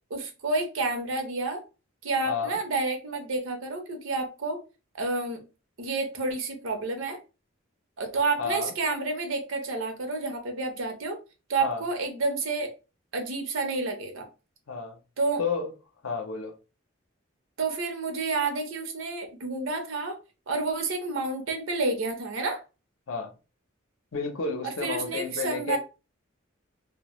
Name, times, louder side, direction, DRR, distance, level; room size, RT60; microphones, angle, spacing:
voice 1, 0.1-1.6 2.0-4.6 4.9-5.4 5.8-7.2 8.0-11.2 11.5-12.7 13.1-14.3 15.2-15.4 17.6-20.2 20.5-22.6 24.6-25.8, right 3 dB, 80° right, 0.7 m, -29 dB
voice 2, 2.3-2.6 8.4-8.7 11.6-11.8 14.7-15.0 15.4-15.7 16.0-16.5 23.1-23.3 24.1-25.8, left 5 dB, 85° left, 0.6 m, -31 dB
2.1 x 2.0 x 2.9 m
head